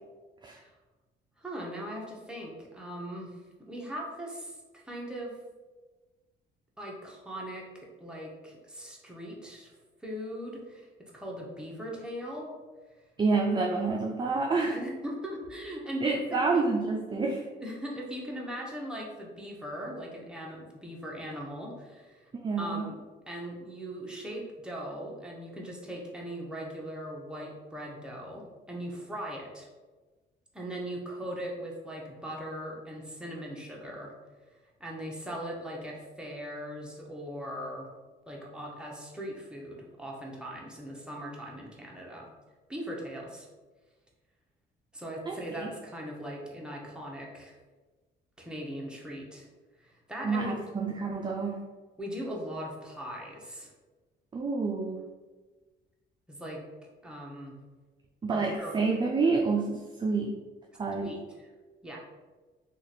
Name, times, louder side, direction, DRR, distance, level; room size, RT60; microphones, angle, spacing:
voice 1, 1.4-3.4 3.7-5.3 6.8-9.7 10.0-10.9 11.1-12.5 14.7-16.2 16.5-16.7 17.6-22.3 22.6-23.0 23.3-29.7 30.5-34.1 34.8-37.9 38.3-42.3 42.7-43.5 44.9-47.5 48.4-49.5 49.8-50.6 52.0-53.7 56.3-56.6 57.0-57.6 58.3-58.8 61.0-61.5 61.8-62.0, equal, 5° right, -3 dB, 0.8 m, -39 dB
voice 2, 13.2-14.8 16.0-17.4 22.4-22.9 45.3-45.7 50.2-51.6 54.3-55.0 58.2-60.3 60.8-61.1, right 4 dB, 25° right, 1 dB, 0.4 m, -28 dB
2.9 x 2.4 x 4.1 m, 1.3 s
cardioid pair, 90°, 20 cm